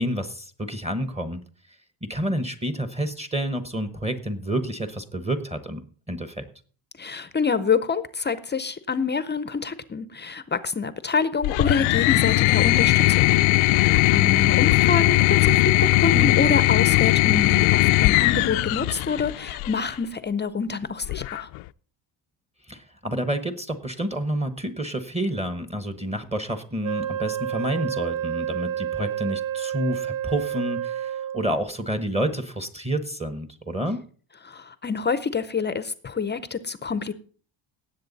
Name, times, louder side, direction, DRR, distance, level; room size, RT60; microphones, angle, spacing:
voice 1, 0.0-1.4 2.0-5.8 6.1-6.5 16.1-16.5 22.7-34.0, right 1 dB, 15° right, 1.1 m, -29 dB
voice 2, 7.0-13.3 13.7-21.5 34.4-37.1, left 5 dB, 25° left, 0.6 m, -27 dB
sound 1, 11.4-19.8 21.0-21.7, left 20 dB, 85° left, 0.6 m, -19 dB
Wind instrument woodwind instrument, 26.8-31.6, right 10 dB, 70° right, 1.1 m, -29 dB
17.5 x 7.8 x 4.0 m
cardioid pair, 135°, 47 cm